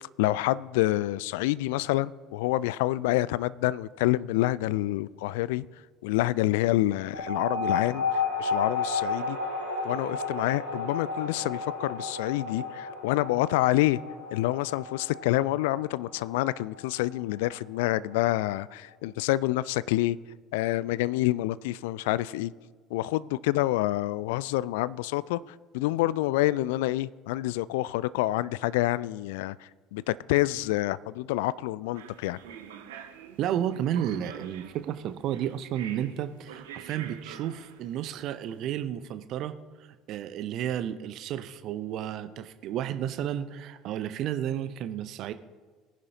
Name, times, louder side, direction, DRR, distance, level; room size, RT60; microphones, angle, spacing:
voice 1, 0.2-5.6 6.0-9.4 9.8-14.0 14.3-20.2 20.5-22.5 22.9-25.4 25.7-32.4, left 16 dB, 65° left, 0.3 m, -27 dB
sound 1, 7.1-18.1, left 4 dB, 90° left, 3.5 m, -33 dB
sound 2, 31.9-38.6, right 8 dB, 70° right, 1.1 m, -46 dB
voice 2, 33.4-39.5 39.8-45.3, right 10 dB, 50° right, 0.7 m, -32 dB
22.0 x 10.5 x 2.8 m
figure-of-eight pair, 65°, 0 cm